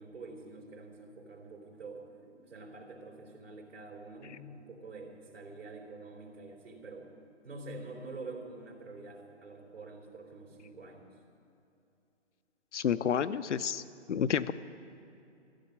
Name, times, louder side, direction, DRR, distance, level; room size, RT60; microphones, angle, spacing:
voice 1, 0.0-7.1 7.4-11.1, right 3 dB, 90° right, -1 dB, 4.0 m, -47 dB
voice 2, 12.7-13.8 14.1-14.5, left 8 dB, 75° left, 15 dB, 0.7 m, -29 dB
15.0 x 8.2 x 8.7 m, 2.7 s
hypercardioid pair, 170°, 36 cm